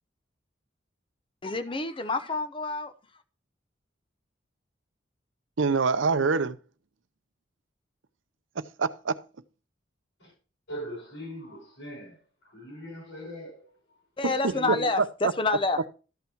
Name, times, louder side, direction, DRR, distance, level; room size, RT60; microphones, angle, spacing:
voice 1, 1.4-2.9 14.2-15.9, left 3 dB, 25° left, 0.7 m, -28 dB
voice 2, 5.6-6.6 8.6-9.2 14.2-14.5 15.0-15.3, right 4 dB, 85° right, 0.6 m, -25 dB
voice 3, 10.7-12.2 12.4-13.7 14.3-14.9, left 1 dB, 80° left, 6.0 m, -40 dB
13.0 x 5.8 x 4.5 m
head